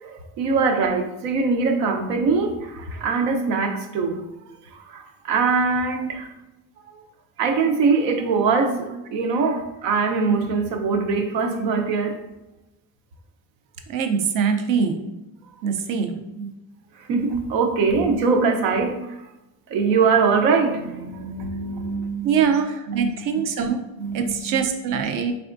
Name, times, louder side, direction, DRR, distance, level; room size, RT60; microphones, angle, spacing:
voice 1, 0.0-4.3 4.7-6.3 7.4-12.2 17.1-19.0 19.7-22.4 22.9-23.1 24.0-24.6 24.9-25.0, right 4 dB, 70° right, 5 dB, 0.8 m, -22 dB
voice 2, 13.9-15.1 15.6-16.5 22.2-23.8 24.1-25.3, right 6 dB, 45° right, 6 dB, 0.5 m, -23 dB
4.2 x 3.4 x 2.5 m, 0.97 s
cardioid pair, 135°, 47 cm